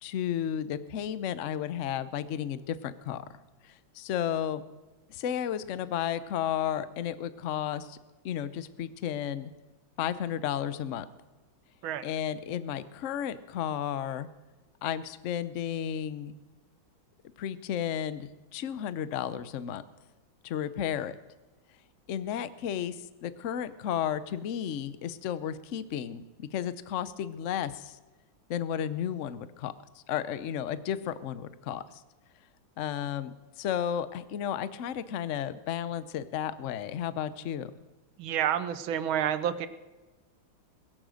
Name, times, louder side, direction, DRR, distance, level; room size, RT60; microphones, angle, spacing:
voice 1, 0.0-3.2 3.6-4.6 5.1-8.0 8.2-9.5 10.0-11.1 12.0-14.3 14.8-16.3 17.4-19.8 20.4-21.2 22.1-28.0 28.5-29.7 30.1-32.0 32.8-37.7, left 9 dB, 80° left, 14 dB, 0.6 m, -33 dB
voice 2, 38.2-39.7, right 10 dB, 85° right, 13 dB, 1.6 m, -29 dB
22.0 x 7.7 x 6.4 m, 1.2 s
omnidirectional pair, 2.2 m